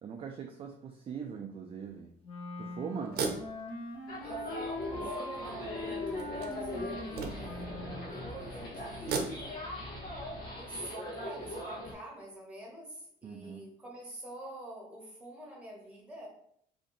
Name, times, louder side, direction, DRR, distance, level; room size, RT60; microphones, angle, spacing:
voice 1, 0.0-2.1 2.6-3.2 13.2-13.7, right 7 dB, 35° right, 3 dB, 0.4 m, -41 dB
sound 1, 1.9-2.0 3.0-4.4 5.0-5.1 6.2-7.7 8.9-9.8, right 4 dB, 70° right, 0.7 m, -37 dB
Wind instrument woodwind instrument, 2.2-8.1, left 2 dB, 35° left, 0.8 m, -42 dB
sound 2, 4.1-11.9, left 1 dB, 65° left, 1.2 m, -40 dB
voice 2, 4.2-7.7 8.1-9.5 10.5-16.3, right 1 dB, 5° right, -2 dB, 1.3 m, -47 dB
2.8 x 2.6 x 3.9 m, 0.69 s
cardioid pair, 110°, 17 cm